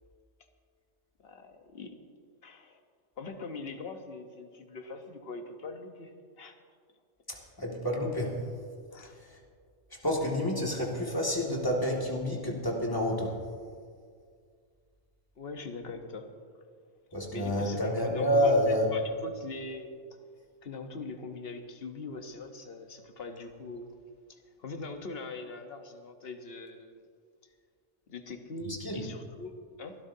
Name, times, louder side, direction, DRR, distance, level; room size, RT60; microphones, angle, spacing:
voice 1, 1.2-2.0 2.4-2.8 3.2-6.6 8.9-9.1 15.4-16.3 17.3-19.9 20.6-23.9 24.3-27.0 28.1-30.0, left 3 dB, 55° left, 5 dB, 1.2 m, -42 dB
voice 2, 7.3-8.4 9.2-9.4 10.0-13.4 17.1-18.9 28.6-29.0, equal, 15° left, -2 dB, 2.1 m, -29 dB
25.0 x 12.5 x 2.8 m, 2.1 s
omnidirectional pair, 1.3 m